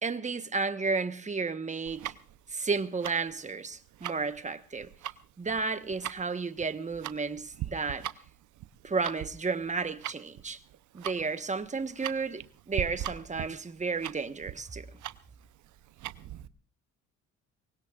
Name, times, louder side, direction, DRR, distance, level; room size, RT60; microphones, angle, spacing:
voice 1, 0.0-2.1 2.5-4.9 5.4-8.1 8.8-10.6 10.9-14.9, right 4 dB, 25° right, 1.1 m, -32 dB
Tick-tock, 1.8-16.5, right 12 dB, 75° right, 0.8 m, -41 dB
23.5 x 19.5 x 2.4 m
cardioid pair, 90°, 30 cm